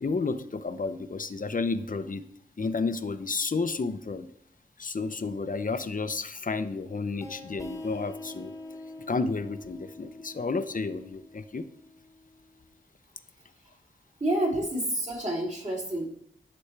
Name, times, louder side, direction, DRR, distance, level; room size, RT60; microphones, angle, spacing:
voice 1, 0.0-2.2 2.6-4.3 4.8-8.5 9.1-11.7, left 4 dB, 40° left, 11 dB, 0.7 m, -31 dB
sound 1, 7.2-12.6, left 2 dB, 15° left, 1.2 m, -44 dB
voice 2, 14.2-16.1, right 1 dB, 35° right, -4 dB, 3.1 m, -29 dB
11.5 x 4.3 x 3.3 m, 0.71 s
cardioid pair, 55°, 21 cm